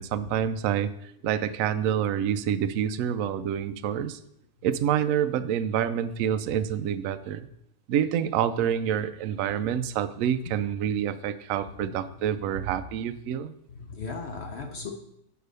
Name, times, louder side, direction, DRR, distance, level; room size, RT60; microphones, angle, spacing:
voice 1, 0.0-4.2 4.6-7.5 7.9-13.5, right 9 dB, 75° right, 11 dB, 0.7 m, -27 dB
voice 2, 13.7-14.9, left 4 dB, 55° left, 3 dB, 0.7 m, -37 dB
6.8 x 4.8 x 6.5 m, 0.76 s
omnidirectional pair, 1.9 m